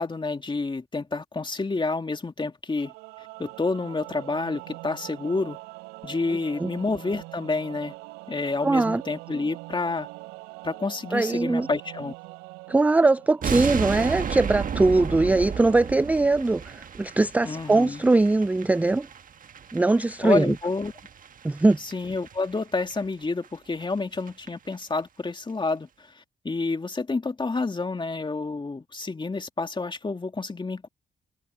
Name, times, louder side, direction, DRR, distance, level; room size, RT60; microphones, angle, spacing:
voice 1, 0.0-2.9 3.4-5.6 6.0-7.9 8.3-10.1 10.6-12.1 17.4-18.0 20.2-20.9 21.8-30.9, left 3 dB, 25° left, 2.5 m, -29 dB
Singing / Musical instrument, 2.7-14.0, right 23 dB, 90° right, 3.8 m, -43 dB
voice 2, 8.6-9.0 11.1-11.7 12.7-19.1 19.7-20.5 21.4-21.8, right 2 dB, 10° right, 0.3 m, -21 dB
sound 1, 13.4-22.6 22.9-23.0 23.4-23.5 23.8-23.9 24.1-24.5 24.7-24.8, right 7 dB, 50° right, 1.4 m, -34 dB
supercardioid pair, 55°, 18 cm